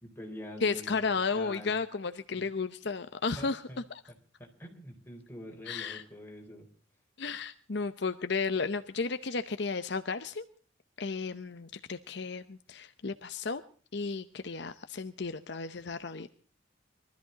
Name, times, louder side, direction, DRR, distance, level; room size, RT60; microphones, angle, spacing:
voice 1, 0.0-1.7 2.4-2.5 3.4-3.8 4.4-6.7, left 1 dB, 10° left, 0 dB, 4.2 m, -45 dB
voice 2, 0.6-3.6 5.7-6.0 7.2-10.4 11.0-13.6 13.9-16.3, left 4 dB, 55° left, 10 dB, 0.8 m, -33 dB
22.5 x 13.5 x 4.0 m, 0.42 s
head